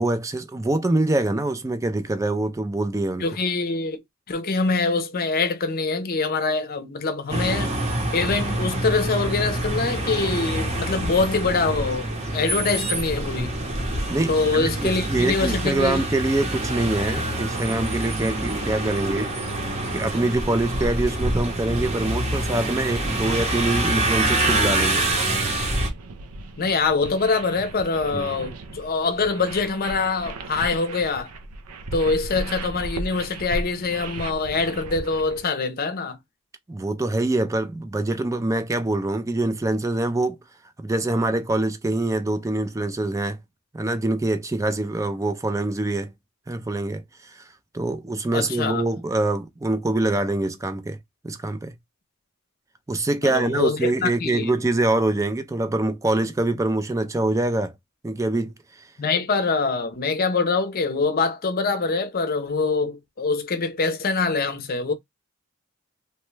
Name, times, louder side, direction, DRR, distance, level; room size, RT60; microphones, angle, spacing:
voice 1, 0.0-3.2 14.1-19.3 19.9-25.1 28.1-28.3 36.7-40.4 40.8-43.4 43.7-46.1 46.5-47.0 47.3-47.4 47.7-51.0 51.2-51.7 52.9-57.7 58.0-58.5, right 2 dB, 15° right, 0.3 m, -24 dB
voice 2, 3.2-4.0 4.3-7.8 8.1-13.5 14.3-16.0 26.6-31.3 31.9-36.2 48.3-48.9 53.2-54.5 59.0-64.9, left 4 dB, 45° left, 0.6 m, -24 dB
sound 1, 7.3-25.9, right 1 dB, 30° right, 0.8 m, -26 dB
sound 2, 24.0-35.5, right 2 dB, 90° right, 0.5 m, -37 dB
2.9 x 2.2 x 3.1 m
head